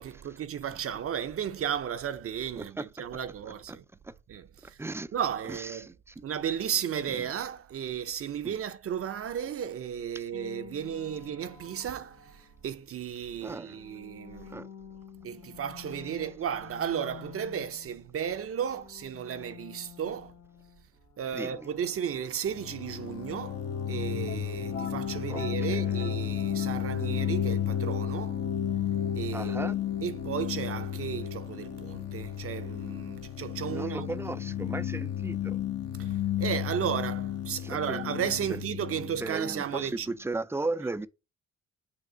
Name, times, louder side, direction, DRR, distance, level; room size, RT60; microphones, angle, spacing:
voice 1, 0.0-3.8 4.3-4.8 5.1-5.9 6.2-14.6 15.2-20.3 21.2-28.4 29.1-29.7 30.0-34.1 36.0-40.1, right 8 dB, 50° right, 0.7 m, -34 dB
voice 2, 2.6-2.9 3.5-3.8 4.0-4.1 4.8-5.1 5.5-6.2 7.1-7.3 8.4-8.6 10.1-10.2 13.4-13.8 14.5-14.7 21.3-21.7 25.3-25.4 25.7-25.9 29.3-29.8 33.7-35.6 37.6-38.1 38.5-38.6 39.0-41.1, right 2 dB, 10° right, 0.4 m, -36 dB
sound 1, 10.3-12.8 13.3-18.2 18.5-23.4, left 10 dB, 85° left, 1.0 m, -51 dB
sound 2, 22.5-40.1, left 10 dB, 55° left, 0.9 m, -33 dB
sound 3, 24.1-33.7, left 4 dB, 40° left, 1.2 m, -46 dB
6.6 x 2.9 x 5.0 m
cardioid pair, 90°, 30 cm